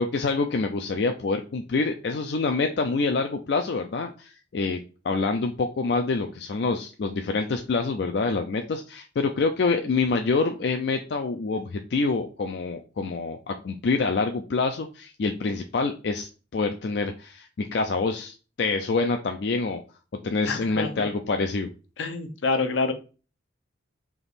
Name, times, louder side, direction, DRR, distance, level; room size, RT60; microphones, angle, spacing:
voice 1, 0.0-4.8 5.0-19.8 20.2-21.7, left 4 dB, 60° left, 5 dB, 0.4 m, -26 dB
voice 2, 20.5-21.1 22.0-22.9, left 3 dB, 85° left, 7 dB, 0.7 m, -27 dB
3.5 x 2.9 x 4.0 m, 0.34 s
head